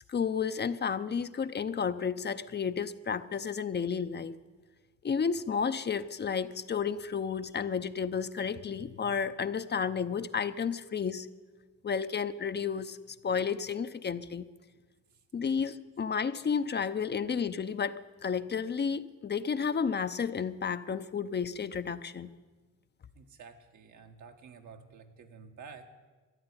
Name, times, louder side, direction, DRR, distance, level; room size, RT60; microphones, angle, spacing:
voice 1, 0.0-4.4 5.0-11.3 11.8-14.4 15.3-22.3, left 6 dB, 35° left, 11 dB, 0.7 m, -32 dB
voice 2, 23.1-25.9, right 5 dB, 75° right, 4 dB, 1.7 m, -50 dB
13.5 x 11.0 x 9.9 m, 1.4 s
cardioid pair, 90°, 30 cm